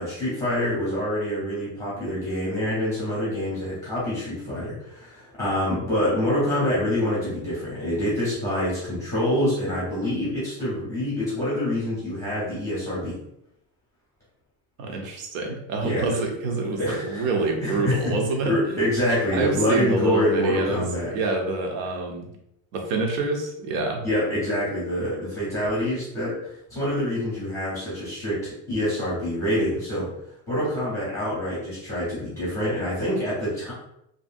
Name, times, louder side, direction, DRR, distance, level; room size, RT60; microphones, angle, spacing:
voice 1, 0.0-13.1 15.8-16.1 16.8-17.3 17.6-18.1 18.4-21.1 24.0-30.1 30.5-33.7, left 1 dB, 5° left, -9 dB, 0.7 m, -26 dB
voice 2, 14.8-18.8 19.3-20.9 21.1-22.3 22.7-24.0, right 3 dB, 65° right, 2 dB, 0.7 m, -26 dB
2.6 x 2.6 x 2.5 m, 0.81 s
supercardioid pair, 180°, 43 cm